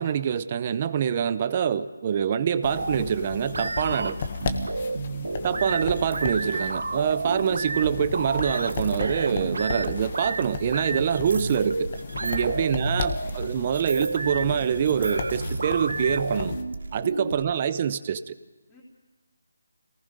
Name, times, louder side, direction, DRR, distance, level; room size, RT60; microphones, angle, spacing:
voice 1, 0.0-4.1 5.4-11.9 12.2-16.5 16.9-18.3, right 8 dB, 25° right, 14 dB, 0.7 m, -25 dB
sound 1, 2.6-16.6, left 5 dB, 30° left, 1.4 m, -35 dB
sound 2, 2.8-17.5, right 3 dB, 75° right, 1.3 m, -32 dB
voice 2, 3.7-4.2 4.7-5.5 12.3-13.2 17.0-17.6 18.7-18.8, left 1 dB, 10° left, -9 dB, 3.6 m, -53 dB
26.5 x 19.0 x 5.3 m, 1.2 s
figure-of-eight pair, 170°, 0 cm